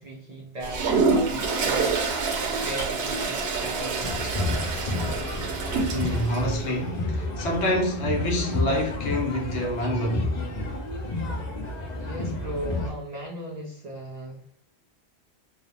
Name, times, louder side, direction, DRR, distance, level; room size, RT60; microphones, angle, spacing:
voice 1, 0.0-4.8 12.0-14.4, right 1 dB, 50° right, 0.5 m, -37 dB
Toilet flush, 0.6-6.4, right 4 dB, 75° right, 0.8 m, -27 dB
sound 1, 4.0-12.9, left 2 dB, 50° left, 0.6 m, -30 dB
voice 2, 5.9-10.5, equal, 80° left, 1.0 m, -27 dB
2.4 x 2.0 x 2.8 m
omnidirectional pair, 1.1 m